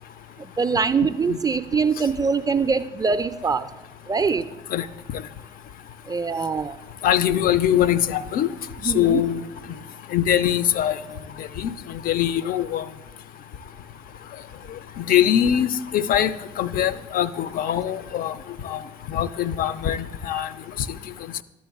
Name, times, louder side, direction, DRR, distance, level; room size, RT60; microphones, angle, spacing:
voice 1, 0.4-3.7 4.1-4.4 6.1-6.7 8.8-9.2, right 5 dB, 20° right, 12 dB, 0.4 m, -23 dB
voice 2, 7.0-8.5 8.8-9.4 10.1-11.0 11.4-11.7 12.0-12.8 15.0-18.3 18.6-18.8 19.1-20.5, left 10 dB, 45° left, 16 dB, 0.4 m, -22 dB
12.0 x 7.2 x 2.3 m, 1.0 s
figure-of-eight pair, 45°, 20 cm